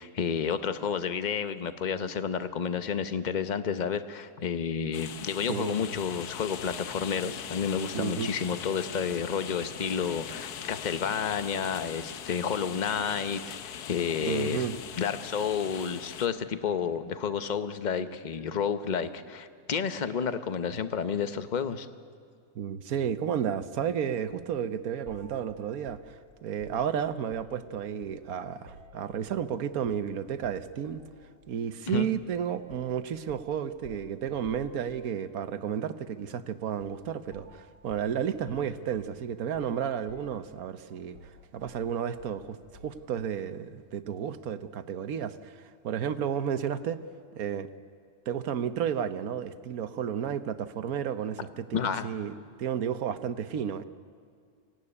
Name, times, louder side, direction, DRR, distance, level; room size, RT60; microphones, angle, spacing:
voice 1, 0.0-14.6 15.0-21.9 31.9-32.1 51.7-52.1, left 6 dB, 35° left, 10 dB, 0.8 m, -30 dB
sound 1, 4.9-16.3, left 9 dB, 85° left, 1.4 m, -41 dB
voice 2, 7.9-8.3 14.2-14.7 22.5-31.0 31.5-42.6 42.8-47.0 47.4-47.7 48.3-53.9, right 8 dB, 70° right, 11 dB, 1.3 m, -32 dB
sound 2, 24.3-24.5 25.1-27.7 28.0-29.5 29.8-30.1 30.4-31.3 32.1-32.3 32.7-35.3 36.8-37.1 37.3-39.8 40.1-40.7 41.1-43.1, left 1 dB, 50° left, 5.4 m, -53 dB
25.5 x 16.5 x 9.8 m, 2.1 s
omnidirectional pair, 1.6 m